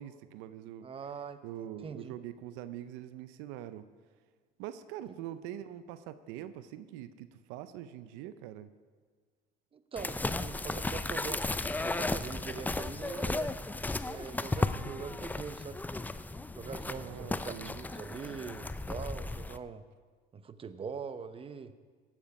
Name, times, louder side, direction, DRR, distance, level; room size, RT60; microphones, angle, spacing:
voice 1, 0.0-0.9 1.4-3.9 4.6-8.7 16.9-17.7, right 11 dB, 80° right, 12 dB, 0.6 m, -44 dB
voice 2, 0.8-1.4 1.8-2.1 5.1-5.2 9.7-13.5 14.0-15.8 16.6-19.8 20.3-21.7, right 6 dB, 30° right, 11 dB, 0.8 m, -43 dB
sound 1, 10.0-19.6, left 2 dB, 10° left, 0.4 m, -35 dB
17.5 x 7.3 x 5.4 m, 1.5 s
supercardioid pair, 85°, 19 cm